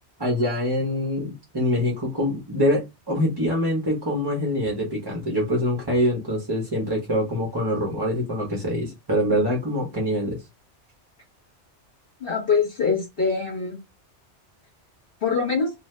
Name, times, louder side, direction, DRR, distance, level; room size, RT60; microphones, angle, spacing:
voice 1, 0.2-10.4, equal, 25° right, 0.8 m, -24 dB
voice 2, 12.2-13.8 15.2-15.7, left 5 dB, 55° left, 1.2 m, -23 dB
2.6 x 2.4 x 3.2 m
omnidirectional pair, 1.2 m